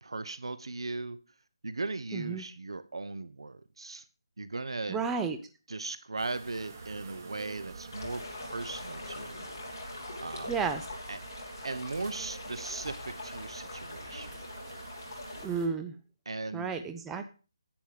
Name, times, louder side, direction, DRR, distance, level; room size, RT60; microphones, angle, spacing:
voice 1, 0.0-1.2 1.6-4.0 4.4-5.0 5.7-9.4 10.2-10.5 11.1-11.2 11.6-14.3 16.2-16.7, right 3 dB, 85° right, 13 dB, 1.0 m, -38 dB
voice 2, 2.1-2.4 4.9-5.4 10.5-10.8 15.4-15.9 16.5-17.2, right 5 dB, 5° right, 7 dB, 0.5 m, -32 dB
sound 1, 6.2-15.7, right 4 dB, 30° right, 2.1 m, -47 dB
sound 2, 7.9-15.5, left 3 dB, 35° left, 3.0 m, -43 dB
10.5 x 9.5 x 5.1 m, 0.35 s
hypercardioid pair, 175°, 3 cm